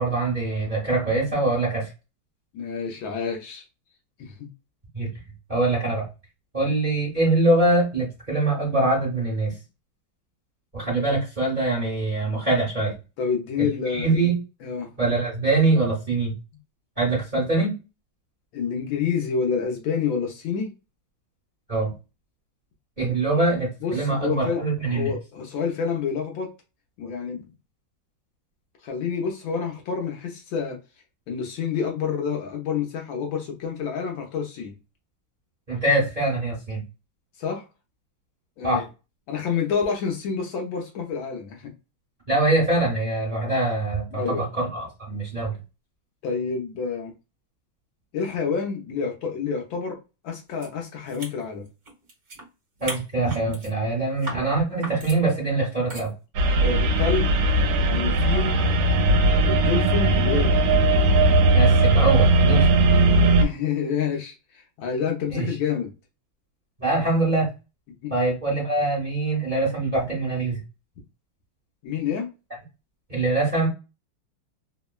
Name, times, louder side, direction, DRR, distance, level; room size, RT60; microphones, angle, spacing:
voice 1, 0.0-1.9 4.9-5.1 5.5-6.1 6.5-9.5 10.7-12.9 13.6-14.4 15.0-16.3 17.0-17.7 21.7-21.9 23.0-25.1 35.7-36.8 38.6-38.8 42.3-45.5 52.8-56.1 61.5-62.7 65.3-65.5 66.8-67.5 68.1-70.6 73.1-73.7, right 2 dB, 30° right, 0.9 m, -23 dB
voice 2, 2.5-3.7 4.2-4.5 13.2-14.2 14.6-14.9 18.5-20.7 23.8-26.5 27.0-27.5 28.8-30.8 31.3-34.8 37.4-37.6 38.6-38.8 39.3-41.7 44.1-44.4 46.2-47.1 48.1-50.0 50.2-51.7 56.6-57.3 57.9-58.7 59.5-60.6 63.4-65.9 68.0-68.1 71.8-72.3, left 6 dB, 75° left, 1.3 m, -28 dB
sound 1, 50.6-50.7 51.0-52.5 52.8-53.7 54.2-54.4 54.8-55.2 55.9-56.1, right 2 dB, 50° right, 1.5 m, -37 dB
sound 2, 56.4-63.5, right 2 dB, 75° right, 1.4 m, -18 dB
3.5 x 2.1 x 2.3 m
omnidirectional pair, 2.3 m